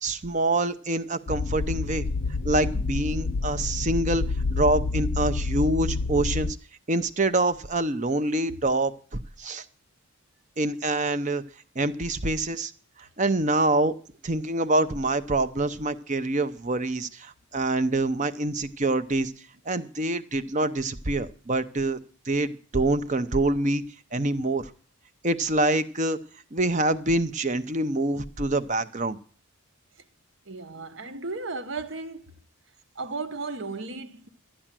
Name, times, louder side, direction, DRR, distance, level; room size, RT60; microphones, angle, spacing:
voice 1, 0.0-2.1 2.4-4.2 4.5-6.6 6.9-9.6 10.6-11.4 11.8-12.7 13.2-13.9 14.2-19.3 19.7-22.0 22.3-23.8 24.1-24.7 25.2-26.2 26.5-29.2, right 2 dB, 35° right, 0.7 m, -26 dB
sound 1, 1.3-6.5, left 3 dB, 70° left, 0.6 m, -28 dB
voice 2, 30.5-32.3 32.9-34.3, right 3 dB, 60° right, 1.0 m, -35 dB
12.5 x 10.0 x 7.4 m
head